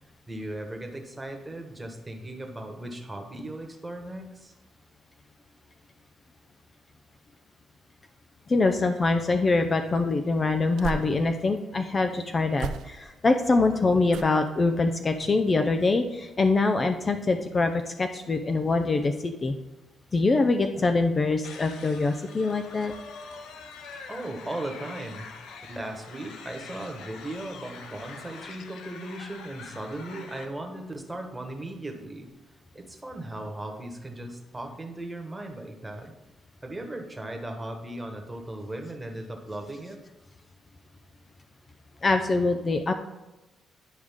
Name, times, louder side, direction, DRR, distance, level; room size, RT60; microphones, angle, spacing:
voice 1, 0.3-4.5 24.1-25.3 25.7-32.3 32.7-36.1 36.6-40.0, right 1 dB, 10° right, 3 dB, 1.3 m, -37 dB
voice 2, 8.5-19.5 20.1-22.9 42.0-42.9, left 3 dB, 30° left, 6 dB, 0.5 m, -24 dB
sound 1, 10.5-11.6 12.5-13.3 14.1-14.6 15.1-15.4 15.7-15.8, right 7 dB, 80° right, 0.3 m, -38 dB
sound 2, 21.4-30.5, left 5 dB, 80° left, 0.7 m, -44 dB
10.0 x 5.0 x 3.6 m, 1.0 s
cardioid pair, 90°, 0 cm